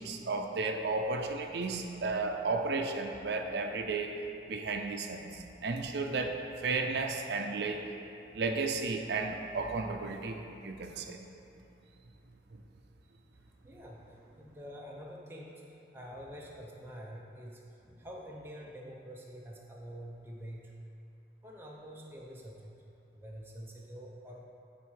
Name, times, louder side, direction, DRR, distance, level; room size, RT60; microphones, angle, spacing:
voice 1, 0.0-4.2 4.5-7.9 8.3-11.2, right 3 dB, 75° right, 4 dB, 0.5 m, -33 dB
voice 2, 13.3-20.7 21.4-22.7 23.1-24.4, equal, 15° right, -3 dB, 0.6 m, -47 dB
7.6 x 4.2 x 4.8 m, 2.7 s
head